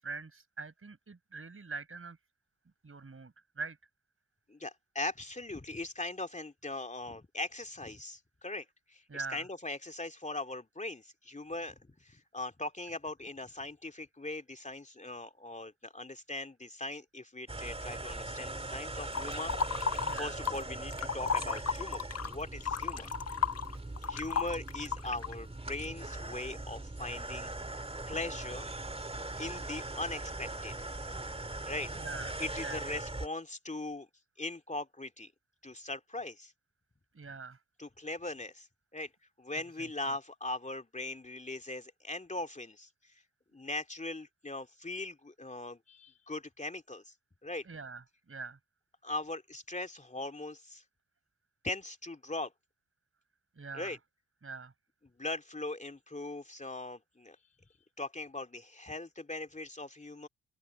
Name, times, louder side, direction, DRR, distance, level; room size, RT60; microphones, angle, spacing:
voice 1, 0.0-2.2 2.8-3.8 9.1-9.5 20.0-20.4 32.0-32.3 32.6-32.8 37.1-37.6 39.8-39.9 47.6-48.6 53.6-54.0 54.4-54.7, right 4 dB, 30° right, 5.8 m, -43 dB
voice 2, 4.5-9.0 9.3-23.1 24.0-27.5 28.1-28.7 29.4-30.7 31.6-31.9 32.4-34.1 34.4-35.3 35.6-36.5 37.8-38.7 38.9-39.1 39.4-42.9 43.5-47.1 47.4-47.7 49.0-50.8 51.6-52.5 53.7-54.0 55.2-57.4 58.0-60.3, left 2 dB, 15° left, 2.6 m, -40 dB
sound 1, 17.5-33.3, right 2 dB, 15° right, 2.2 m, -41 dB
sound 2, 19.1-20.6 20.9-25.3, left 6 dB, 35° left, 1.4 m, -34 dB
open air
hypercardioid pair, 40°, 41 cm